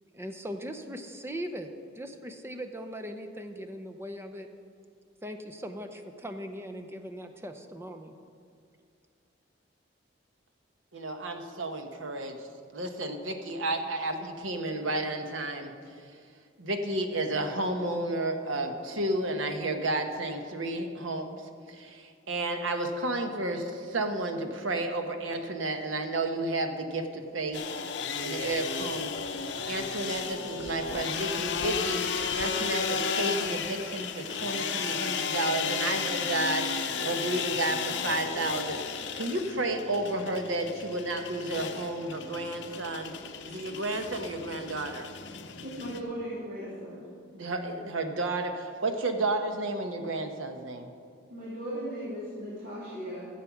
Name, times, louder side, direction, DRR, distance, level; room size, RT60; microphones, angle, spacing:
voice 1, 0.1-4.5 5.2-8.1, equal, 15° right, 6 dB, 0.6 m, -39 dB
voice 2, 10.9-12.5 12.7-15.7 16.6-21.4 21.7-27.6 28.2-43.1 43.4-45.1 47.3-50.9, right 2 dB, 85° right, 6 dB, 1.1 m, -32 dB
sound 1, 27.5-46.0, left 6 dB, 60° left, 0.8 m, -34 dB
voice 3, 45.6-47.0 51.3-53.3, equal, 45° right, -9 dB, 2.7 m, -37 dB
12.5 x 7.7 x 5.9 m, 2.3 s
head